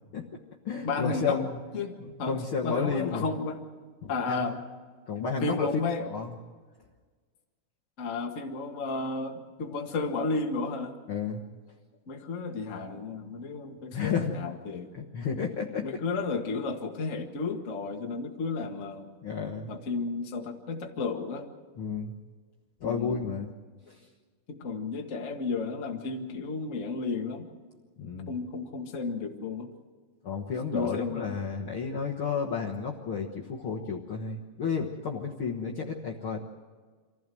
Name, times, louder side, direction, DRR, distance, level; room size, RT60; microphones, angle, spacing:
voice 1, 0.1-1.6 2.0-3.2 4.0-4.6 5.1-5.7 6.0-6.3 11.1-11.4 13.9-14.3 14.9-15.9 19.2-19.7 21.7-22.2 22.8-23.5 23.9-24.0 28.0-28.3 30.2-36.4, left 5 dB, 55° left, -1 dB, 1.7 m, -32 dB
voice 2, 0.8-1.4 1.7-1.9 2.2-3.6 4.1-4.6 5.4-6.0 8.0-10.9 12.1-14.9 15.8-19.1 19.7-21.5 22.8-23.3 24.5-27.5 28.3-29.7 30.7-31.3, left 4 dB, 30° left, 2 dB, 1.4 m, -33 dB
26.0 x 15.5 x 7.8 m, 1.5 s
omnidirectional pair, 3.9 m